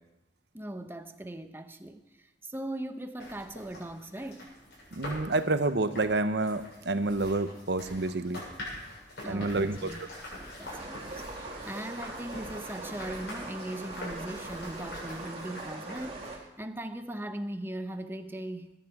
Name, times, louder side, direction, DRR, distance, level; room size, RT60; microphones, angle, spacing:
voice 1, 0.5-2.0 2.4-4.5 9.2-10.0 10.3-18.7, right 1 dB, 10° right, 8 dB, 0.8 m, -39 dB
Stirring with Wooden Spoon and Wet Smacking, 3.2-16.3, left 1 dB, 65° left, 7.2 m, -45 dB
voice 2, 5.0-8.4 9.3-9.9, right 2 dB, 65° right, 10 dB, 0.9 m, -28 dB
sound 1, 10.7-16.4, right 2 dB, 35° right, 2.5 m, -42 dB
21.0 x 10.5 x 4.8 m, 0.91 s
head